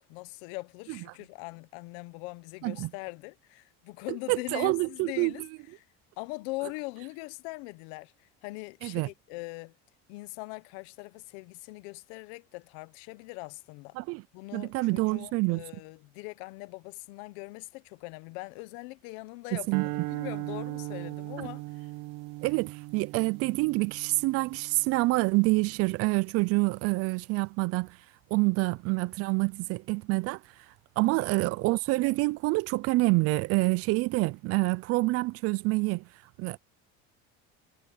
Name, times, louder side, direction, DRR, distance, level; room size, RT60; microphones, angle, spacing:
voice 1, 0.0-5.5 5.7-5.8 6.2-9.7 10.1-14.0 14.3-21.6 31.1-31.5, left 24 dB, 85° left, 1.0 m, -41 dB
voice 2, 4.3-5.3 8.8-9.1 14.0-14.2 14.5-15.6 19.7-19.9 21.4-21.5 22.4-28.0 28.3-30.4 31.0-36.0 36.4-36.6, right 23 dB, 50° right, 0.4 m, -27 dB
sound 1, 19.7-26.1, right 22 dB, 80° right, 1.1 m, -39 dB
cardioid pair, 150°, 30 cm